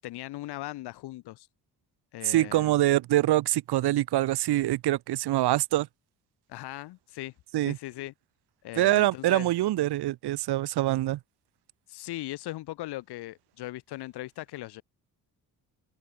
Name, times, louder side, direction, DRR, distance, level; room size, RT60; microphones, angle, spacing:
voice 1, 0.0-1.5 2.1-2.8 6.5-7.3 7.6-8.1 8.6-9.5 11.9-14.8, left 16 dB, 90° left, 6.7 m, -39 dB
voice 2, 2.2-5.9 7.5-7.8 8.8-11.2, right 15 dB, 80° right, 5.7 m, -24 dB
open air
cardioid pair, 105°, 38 cm